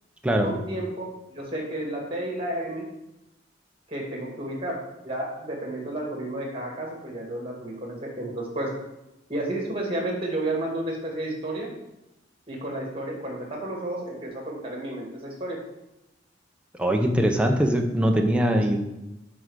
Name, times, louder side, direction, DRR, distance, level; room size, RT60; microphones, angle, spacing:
voice 1, 0.4-2.9 3.9-4.8 5.0-8.7 9.3-11.7 12.5-15.6 18.5-18.6, right 1 dB, 30° right, -1 dB, 1.8 m, -31 dB
voice 2, 16.8-18.8, equal, 5° right, 2 dB, 0.6 m, -22 dB
6.1 x 4.6 x 4.7 m, 0.94 s
head